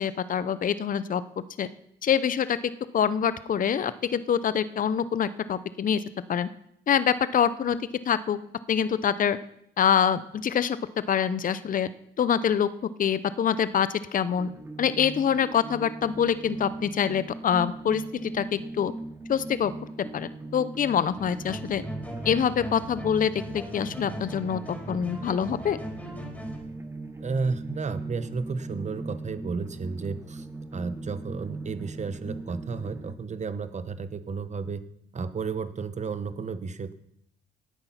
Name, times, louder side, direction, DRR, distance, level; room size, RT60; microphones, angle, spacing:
voice 1, 0.0-1.7 2.0-2.6 2.9-6.0 6.3-6.5 6.9-7.8 8.1-8.4 8.7-9.4 9.8-10.8 11.1-11.9 12.2-12.7 13.0-14.5 14.8-18.9 19.3-19.7 20.1-21.8 22.2-24.6 24.9-25.8, left 8 dB, 45° left, 15 dB, 0.7 m, -25 dB
sound 1, 14.4-33.2, right 2 dB, 10° right, 1.2 m, -40 dB
sound 2, 21.2-26.6, right 1 dB, 5° left, 4.0 m, -38 dB
voice 2, 27.2-30.5 30.7-34.8 35.1-36.9, right 4 dB, 35° right, 12 dB, 1.0 m, -32 dB
12.0 x 8.9 x 5.8 m, 0.74 s
cardioid pair, 90°, 20 cm